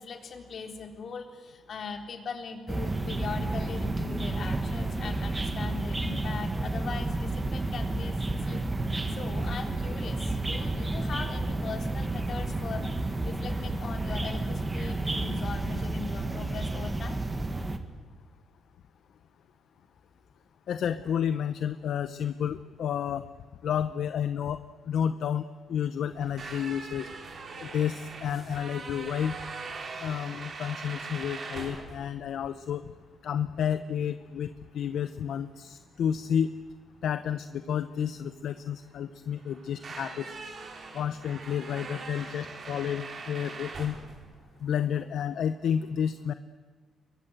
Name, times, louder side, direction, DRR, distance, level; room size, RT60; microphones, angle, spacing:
voice 1, 0.0-8.2 8.4-8.6 9.2-17.2, left 5 dB, 50° left, 4 dB, 3.7 m, -40 dB
sound 1, 2.7-17.8, right 2 dB, 15° right, 2.0 m, -31 dB
voice 2, 20.7-23.3 23.6-27.1 27.6-29.4 30.0-32.8 33.2-36.5 37.0-40.3 40.9-44.0 44.6-46.3, left 8 dB, 70° left, 11 dB, 0.9 m, -31 dB
sound 2, 26.1-45.0, right 4 dB, 40° right, 4.3 m, -42 dB
29.5 x 23.5 x 7.9 m, 1.4 s
cardioid pair, 140°, 0 cm